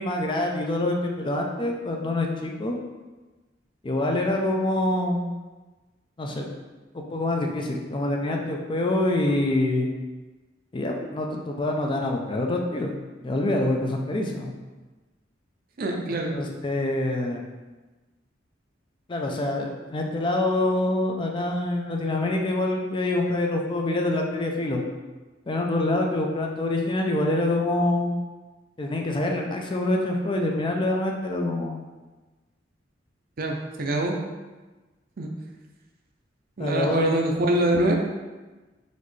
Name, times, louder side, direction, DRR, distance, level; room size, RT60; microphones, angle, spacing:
voice 1, 0.0-2.8 3.8-5.2 6.2-6.5 6.9-9.9 10.7-13.0 13.2-14.5 16.3-17.4 19.1-24.8 25.5-28.2 28.8-31.8 36.6-37.1, left 2 dB, 25° left, 1 dB, 0.4 m, -26 dB
voice 2, 15.8-16.3 33.4-34.2 35.2-35.3 36.6-38.0, right 1 dB, 50° right, 2 dB, 0.5 m, -24 dB
4.1 x 3.1 x 3.2 m, 1.2 s
head